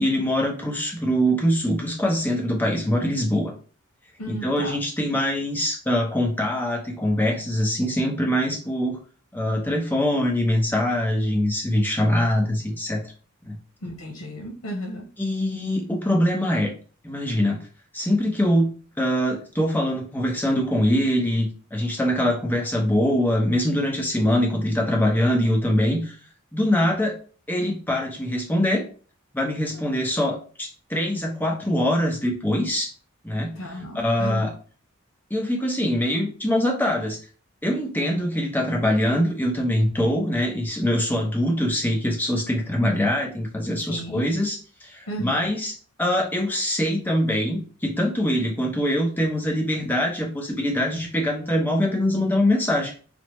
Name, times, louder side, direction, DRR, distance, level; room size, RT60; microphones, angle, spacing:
voice 1, 0.0-3.5 4.3-9.0 9.3-13.0 13.4-13.6 15.2-16.7 17.0-17.6 17.9-26.2 26.5-27.2 27.5-28.8 29.3-32.9 33.2-33.6 33.9-34.5 35.3-37.2 37.6-52.9, equal, 10° left, 0 dB, 0.6 m, -23 dB
voice 2, 4.2-4.8 13.8-15.0 29.7-29.9 33.5-34.5 43.9-44.3 45.1-45.5, right 1 dB, 85° left, 1 dB, 0.8 m, -34 dB
3.4 x 2.0 x 3.0 m, 0.38 s
head